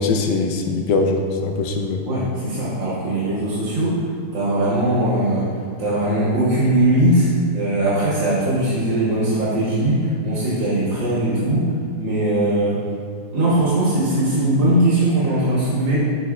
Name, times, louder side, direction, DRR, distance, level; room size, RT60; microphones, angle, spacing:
voice 1, 0.0-2.1, left 3 dB, 70° left, 3 dB, 1.2 m, -21 dB
voice 2, 2.0-4.0 4.3-5.5 5.8-7.3 7.5-11.7 12.0-12.9 13.3-16.0, right 1 dB, 80° right, -8 dB, 2.0 m, -20 dB
11.5 x 5.3 x 2.4 m, 2.2 s
omnidirectional pair, 2.0 m